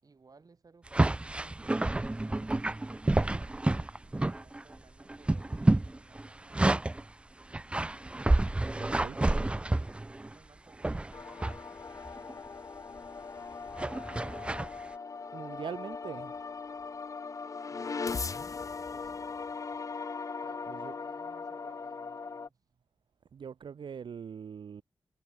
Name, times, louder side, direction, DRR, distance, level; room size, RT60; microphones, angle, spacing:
voice 1, 0.0-2.6 3.2-5.5 5.9-6.9 7.3-7.8 9.1-11.5 17.7-18.3 18.9-19.4 20.4-22.6, right 4 dB, 45° right, 5.0 m, -60 dB
sound 1, 0.9-4.8 5.0-7.0 7.5-10.3 10.8-11.6 12.1-12.3 13.7-14.7, right 2 dB, 15° right, 0.3 m, -29 dB
voice 2, 8.8-9.2 15.3-16.3 20.7-20.9 23.3-24.8, right 7 dB, 70° right, 1.1 m, -42 dB
sound 2, 11.1-22.5, left 4 dB, 40° left, 0.6 m, -39 dB
cardioid pair, 75°, 8 cm